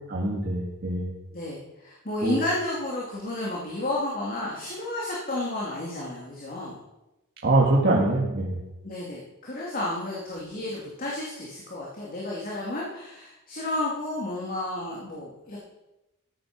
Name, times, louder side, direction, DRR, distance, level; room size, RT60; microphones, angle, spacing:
voice 1, 0.1-1.1 2.2-2.4 7.4-8.6, right 2 dB, 45° right, -4 dB, 2.0 m, -23 dB
voice 2, 1.3-6.8 8.8-15.6, left 2 dB, 40° left, -4 dB, 2.7 m, -32 dB
14.5 x 9.2 x 6.1 m, 0.96 s
head